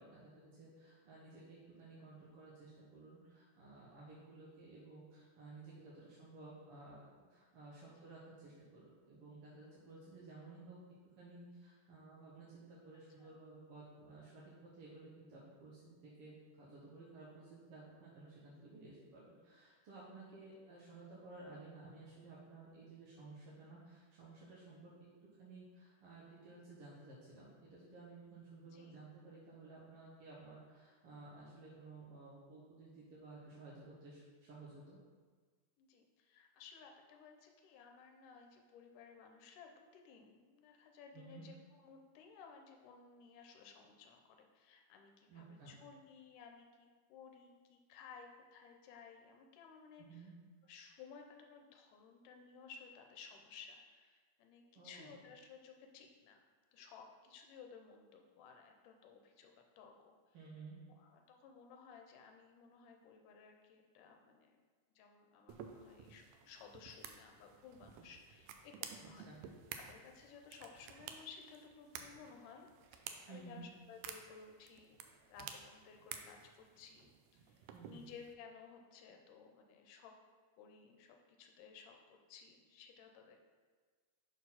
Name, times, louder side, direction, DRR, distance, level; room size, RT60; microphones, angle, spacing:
voice 1, 0.0-7.0 7.3-10.8 11.2-24.9 25.4-35.0 41.1-41.4 45.3-45.7 50.0-50.3 54.7-55.1 60.3-60.8 69.2-69.4 73.3-73.6 77.7-78.0, right 3 dB, 60° right, -7 dB, 1.7 m, -55 dB
voice 2, 28.6-29.1 35.8-50.3 50.6-56.4 56.7-60.4 61.0-64.6 65.0-69.3 69.8-75.0 75.3-80.1 80.6-83.4, left 6 dB, 80° left, 3 dB, 2.3 m, -57 dB
sound 1, 65.5-78.3, right 8 dB, 90° right, 1.6 m, -53 dB
6.3 x 4.5 x 5.6 m, 1.5 s
omnidirectional pair, 3.8 m